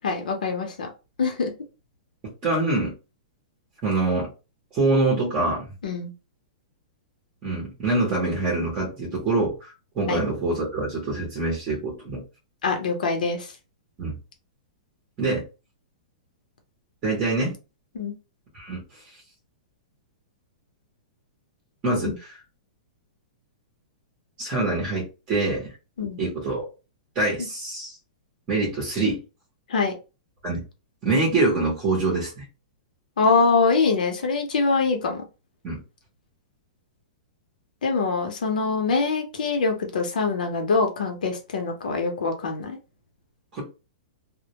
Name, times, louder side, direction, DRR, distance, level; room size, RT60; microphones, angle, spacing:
voice 1, 0.0-0.9 1.2-1.5 5.8-6.1 10.1-10.2 12.6-13.5 17.9-18.1 22.0-22.1 26.0-26.2 29.7-29.9 33.2-35.2 37.8-42.8, left 4 dB, 80° left, 4 dB, 0.7 m, -24 dB
voice 2, 2.4-2.9 3.8-4.3 4.7-5.7 7.4-12.2 14.0-14.1 15.2-15.4 17.0-17.6 18.5-18.8 21.8-22.1 24.4-25.7 26.2-26.6 27.1-28.0 28.5-29.2 30.4-30.6 31.0-32.4 35.6-35.8 43.5-43.6, right 2 dB, 15° right, -4 dB, 0.7 m, -25 dB
2.1 x 2.1 x 2.8 m, 0.30 s
hypercardioid pair, 180°, 5 cm